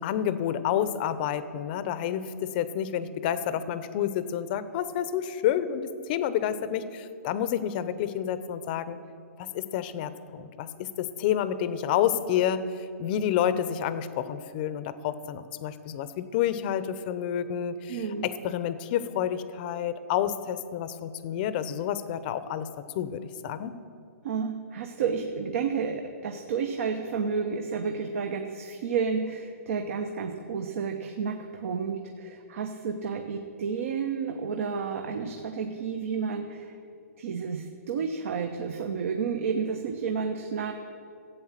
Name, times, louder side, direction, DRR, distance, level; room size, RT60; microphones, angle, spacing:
voice 1, 0.0-9.0 9.4-22.7 22.9-23.7, left 10 dB, 35° left, 13 dB, 0.7 m, -29 dB
voice 2, 17.9-18.3 24.2-36.8 37.2-40.7, right 6 dB, 55° right, 4 dB, 1.0 m, -31 dB
14.0 x 8.4 x 7.4 m, 2.4 s
hypercardioid pair, 155°, 9 cm